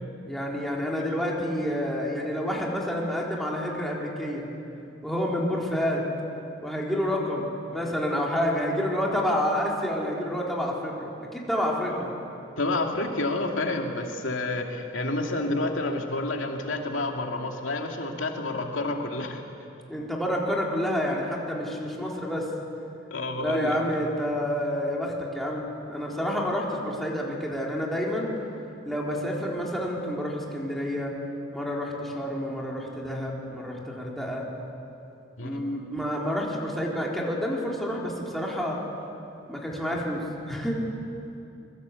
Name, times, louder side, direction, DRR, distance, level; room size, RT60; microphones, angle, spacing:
voice 1, 0.3-4.5 5.0-6.1 6.6-12.1 19.9-22.5 23.3-28.3 28.8-31.1 31.5-34.4 35.4-38.8 39.5-40.8, equal, ahead, -3 dB, 3.9 m, -29 dB
voice 2, 12.6-19.4 23.1-23.8 35.4-35.6, left 2 dB, 90° left, 2 dB, 2.4 m, -29 dB
25.5 x 21.5 x 8.4 m, 2.7 s
head